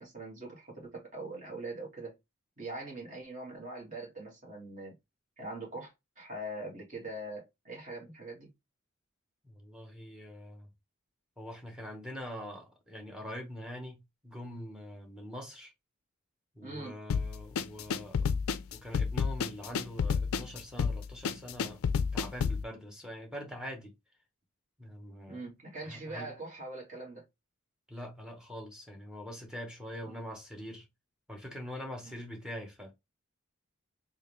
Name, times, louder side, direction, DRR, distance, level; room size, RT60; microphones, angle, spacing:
voice 1, 0.0-2.1 2.6-4.9 5.4-8.5 16.6-17.0 25.3-27.2 32.0-32.1, right 2 dB, 35° right, 1.6 m, -42 dB
voice 2, 9.4-10.7 11.4-15.7 16.5-18.3 18.7-21.8 22.1-23.9 24.8-25.5 25.8-26.3 27.9-30.9 31.3-32.9, equal, 5° right, 0.9 m, -44 dB
sound 1, 17.1-22.6, left 6 dB, 70° left, 0.4 m, -30 dB
3.6 x 2.5 x 3.1 m
head